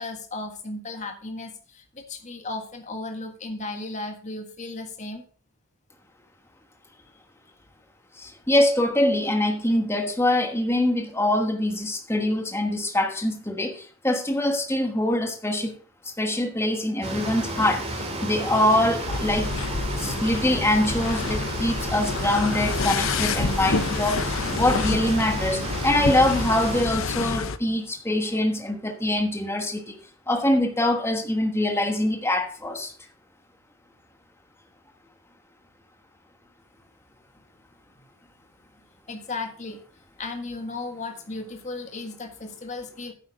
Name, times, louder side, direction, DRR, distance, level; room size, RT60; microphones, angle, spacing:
voice 1, 0.0-5.2 39.1-39.8 40.2-43.1, left 3 dB, 35° left, 1.6 m, -35 dB
voice 2, 8.2-15.7 16.2-19.5 20.0-30.0 30.3-32.9, left 1 dB, 10° left, 1.3 m, -24 dB
sound 1, 17.0-26.8, right 1 dB, 30° right, 2.5 m, -32 dB
sound 2, 19.0-27.6, left 4 dB, 65° left, 0.7 m, -28 dB
9.3 x 7.9 x 5.2 m
head